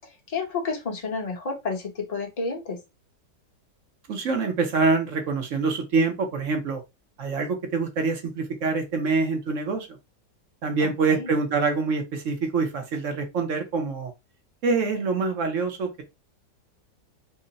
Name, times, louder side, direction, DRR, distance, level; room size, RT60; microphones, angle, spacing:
voice 1, 0.3-2.8 10.8-11.3, left 4 dB, 30° left, 0.8 m, -30 dB
voice 2, 4.1-6.8 7.2-9.9 10.6-14.1 14.6-16.0, right 4 dB, 55° right, 1.0 m, -25 dB
3.8 x 2.0 x 3.9 m
omnidirectional pair, 1.9 m